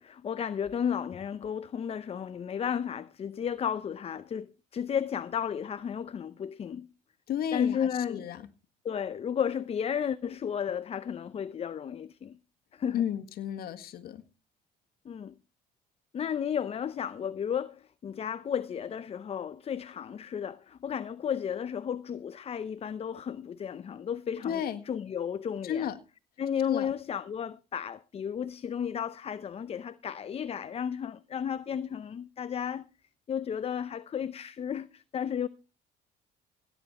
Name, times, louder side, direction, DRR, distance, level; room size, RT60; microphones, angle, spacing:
voice 1, 0.0-6.9 7.5-8.2 8.8-12.4 12.7-13.0 15.1-15.3 16.1-24.5 24.9-25.9 26.4-32.8 33.3-35.5, left 8 dB, 35° left, 0.6 m, -33 dB
voice 2, 7.3-8.5 12.9-14.2 24.4-24.9 25.6-26.0 26.6-26.9, left 9 dB, 65° left, 1.7 m, -33 dB
16.5 x 9.9 x 4.3 m
cardioid pair, 110°, 17 cm